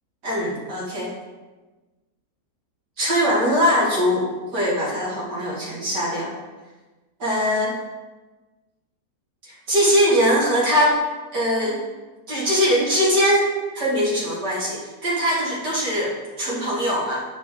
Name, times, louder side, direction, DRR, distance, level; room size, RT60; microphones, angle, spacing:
voice 1, 0.2-1.1 3.0-6.3 7.2-7.8 9.7-11.0 11.3-11.8 12.3-13.5 13.7-17.2, equal, 80° right, -5 dB, 2.9 m, -21 dB
8.0 x 6.9 x 3.8 m, 1.2 s
omnidirectional pair, 1.8 m